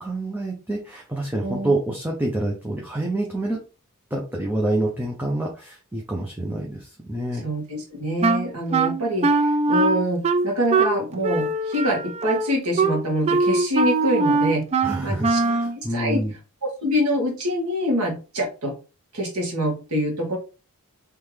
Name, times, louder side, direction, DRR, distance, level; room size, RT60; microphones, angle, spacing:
voice 1, 0.0-3.6 4.1-7.5 14.8-16.3, right 1 dB, 10° right, -2 dB, 0.7 m, -27 dB
voice 2, 7.4-14.7 15.0-15.4 15.9-16.2 16.8-18.7 19.1-20.4, equal, 85° right, -1 dB, 1.9 m, -25 dB
Wind instrument woodwind instrument, 8.2-15.8, right 3 dB, 30° right, 0.3 m, -22 dB
3.7 x 3.4 x 3.2 m, 0.33 s
head